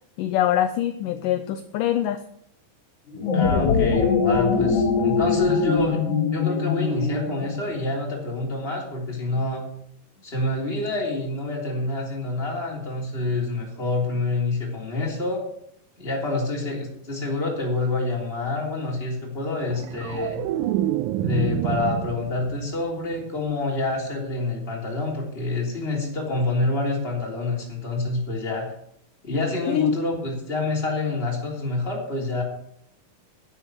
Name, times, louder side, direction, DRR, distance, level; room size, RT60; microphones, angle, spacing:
voice 1, 0.2-2.2 29.7-30.0, left 10 dB, 80° left, 10 dB, 2.1 m, -24 dB
sound 1, 3.1-7.7, left 5 dB, 60° left, 3.1 m, -22 dB
voice 2, 3.3-6.0 6.3-9.6 10.2-15.4 16.0-20.4 21.1-28.7 29.2-32.4, left 2 dB, 15° left, -2 dB, 3.3 m, -27 dB
sound 2, 19.6-22.8 23.1-23.5, right 13 dB, 80° right, 2.2 m, -27 dB
11.0 x 10.0 x 6.3 m, 0.71 s
omnidirectional pair, 4.3 m